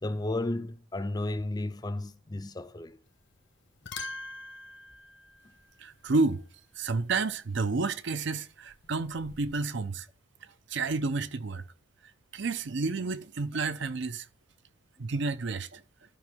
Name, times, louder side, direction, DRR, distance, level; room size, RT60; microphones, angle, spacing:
voice 1, 0.0-3.0, left 2 dB, 20° left, 0.5 m, -33 dB
sound 1, 3.1-3.4 3.7-6.2 8.7-9.6, left 3 dB, 60° left, 1.1 m, -44 dB
voice 2, 5.8-6.5 6.8-10.1 10.7-11.6 12.3-14.3 15.0-15.8, right 3 dB, 60° right, 0.6 m, -30 dB
12.5 x 5.2 x 3.6 m
head